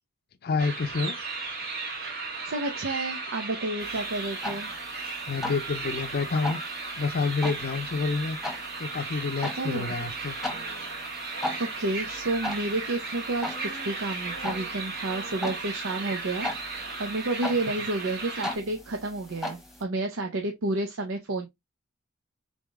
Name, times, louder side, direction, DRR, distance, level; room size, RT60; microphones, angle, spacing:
voice 1, 0.4-1.1 5.3-6.6 7.0-8.4 8.8-10.4, left 4 dB, 50° left, 0.5 m, -28 dB
sound 1, 0.6-18.6, right 3 dB, 50° right, 1.4 m, -36 dB
voice 2, 2.4-4.7 9.6-9.9 11.6-21.5, right 2 dB, 80° right, 0.7 m, -30 dB
sound 2, 3.8-19.8, left 1 dB, ahead, 1.2 m, -39 dB
3.8 x 3.6 x 3.4 m
head